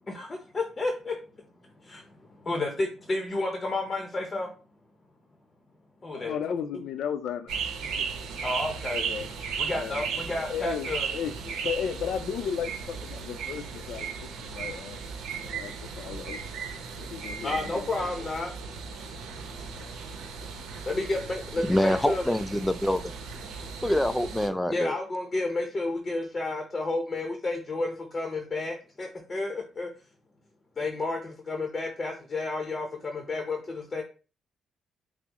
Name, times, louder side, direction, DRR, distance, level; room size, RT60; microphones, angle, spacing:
voice 1, 0.1-1.2 1.6-4.5 6.0-7.1 8.4-9.0 9.6-11.1 13.8-14.1 16.2-16.4 17.4-18.5 20.9-22.3 24.7-29.9 30.8-34.0, left 2 dB, 30° left, 0.7 m, -31 dB
voice 2, 6.1-7.5 8.0-8.1 8.9-9.3 9.7-11.3 11.6-15.1 15.4-16.4 17.0-18.1, left 7 dB, 75° left, 0.5 m, -35 dB
sound 1, 7.5-24.5, right 6 dB, 85° right, 0.7 m, -36 dB
voice 3, 21.6-23.1 23.8-25.0, left 1 dB, 5° left, 0.3 m, -26 dB
5.8 x 2.0 x 3.0 m
cardioid pair, 90°, 0 cm